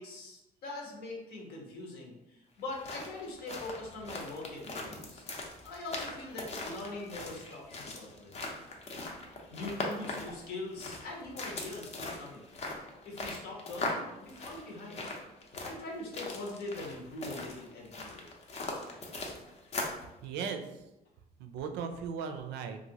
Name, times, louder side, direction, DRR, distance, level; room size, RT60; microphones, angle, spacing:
voice 1, 0.0-5.3 5.6-8.6 9.5-12.4 13.0-15.1 15.6-18.3 19.9-20.0, left 2 dB, 70° left, -1 dB, 0.9 m, -42 dB
sound 1, 2.6-20.1, left 2 dB, 40° left, 0.6 m, -40 dB
voice 2, 20.2-20.8 21.4-22.8, right 6 dB, 85° right, 6 dB, 0.4 m, -37 dB
2.8 x 2.5 x 2.8 m, 0.93 s
cardioid pair, 110°, 17 cm